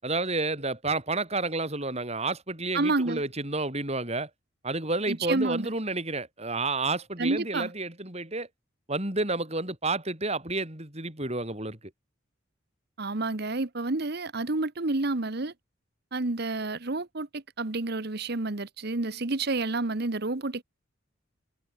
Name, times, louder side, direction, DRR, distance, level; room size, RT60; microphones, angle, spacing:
voice 1, 0.0-4.3 4.6-8.5 8.9-11.8, right 2 dB, 35° right, 6.4 m, -30 dB
voice 2, 2.7-3.2 5.1-5.7 7.2-7.7 13.0-15.5 16.1-20.6, right 2 dB, 55° right, 1.2 m, -29 dB
head